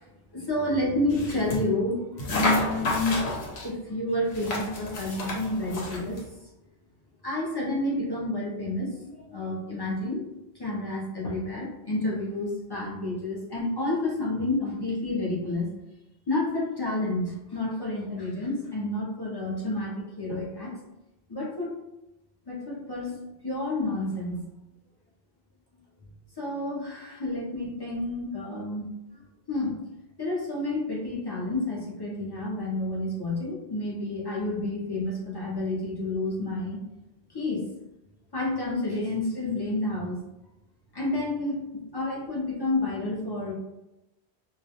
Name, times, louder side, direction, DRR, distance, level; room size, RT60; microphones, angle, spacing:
voice 1, 0.0-3.2 3.6-6.2 7.2-10.3 10.6-15.7 16.3-20.7 21.3-21.7 22.5-23.2 23.4-24.4 26.4-29.2 29.5-29.8 30.2-36.8 37.3-37.7 38.3-40.2 40.9-43.5, left 2 dB, 40° left, -4 dB, 0.4 m, -30 dB
sound 1, 1.1-1.6 2.2-3.7 4.3-6.2, left 2 dB, 80° left, 0.9 m, -31 dB
2.2 x 2.1 x 2.7 m, 0.94 s
omnidirectional pair, 1.1 m